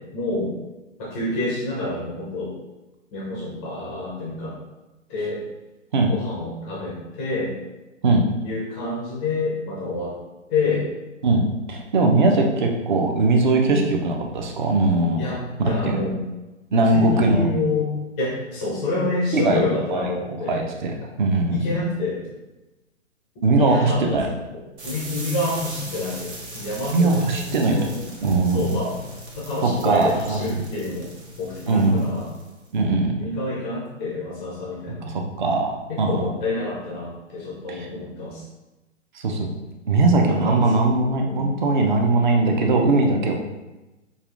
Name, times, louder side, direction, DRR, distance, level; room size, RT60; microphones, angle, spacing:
voice 1, 0.1-0.5 1.0-2.5 3.1-4.5 5.1-5.4 6.1-7.6 8.4-10.1 10.5-10.9 13.6-13.9 15.2-15.4 15.6-16.2 16.7-20.6 21.5-22.3 23.6-27.9 28.5-28.9 29.4-31.1 31.4-32.3 33.2-35.1 35.9-38.4 40.3-40.8 41.2-41.5, left 2 dB, 10° left, -5 dB, 0.5 m, -28 dB
voice 2, 11.2-15.2 15.6-16.0 16.7-17.5 19.3-19.6 19.9-20.1 20.5-21.7 23.4-24.3 26.9-27.9 28.2-28.7 29.6-30.6 31.7-32.1 32.7-33.3 35.0-36.2 37.7-37.9 39.1-39.5 39.9-43.3, right 2 dB, 40° right, 2 dB, 0.6 m, -20 dB
sound 1, 24.8-32.7, right 1 dB, 60° right, 1.3 m, -38 dB
5.5 x 2.4 x 2.4 m, 1.1 s
figure-of-eight pair, 130°, 38 cm